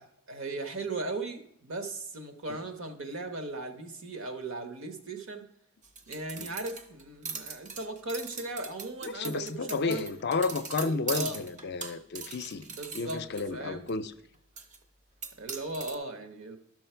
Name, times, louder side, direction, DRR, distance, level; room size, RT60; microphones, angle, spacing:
voice 1, 0.3-5.5 6.1-10.1 10.7-11.4 12.7-13.2 13.5-13.9 15.4-16.6, right 2 dB, 70° right, 7 dB, 1.1 m, -37 dB
sound 1, 5.8-13.4 13.9-14.0 14.6-14.8 15.2-15.9, right 5 dB, 35° right, 0.7 m, -40 dB
voice 2, 9.0-12.7 12.9-14.1, left 4 dB, 50° left, 11 dB, 0.5 m, -32 dB
12.0 x 6.3 x 4.5 m, 0.77 s
head